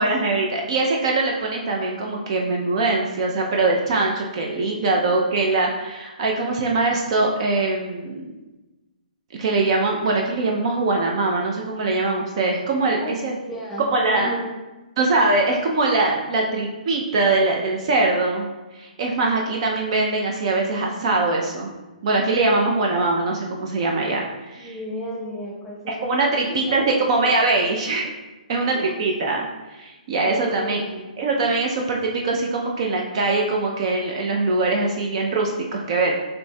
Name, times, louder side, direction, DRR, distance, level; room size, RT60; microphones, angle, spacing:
voice 1, 0.0-8.2 9.4-13.4 13.9-14.3 15.0-18.5 18.7-21.7 22.0-24.2 24.5-24.7 25.9-28.1 28.5-30.8 31.2-36.1, right 3 dB, 40° right, 0 dB, 0.5 m, -22 dB
voice 2, 4.7-5.1 12.9-14.5 24.6-26.1 26.5-27.4 28.6-29.1 30.2-31.1, equal, 5° left, -6 dB, 0.8 m, -34 dB
6.7 x 2.6 x 2.2 m, 1.1 s
hypercardioid pair, 160°, 5 cm